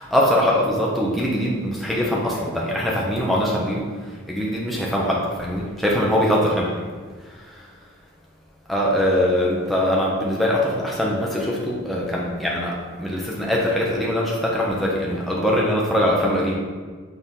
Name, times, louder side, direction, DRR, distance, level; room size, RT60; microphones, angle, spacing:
voice 1, 0.0-6.7 7.2-7.6 8.7-16.6, equal, ahead, -5 dB, 0.8 m, -22 dB
5.6 x 4.4 x 4.7 m, 1.5 s
head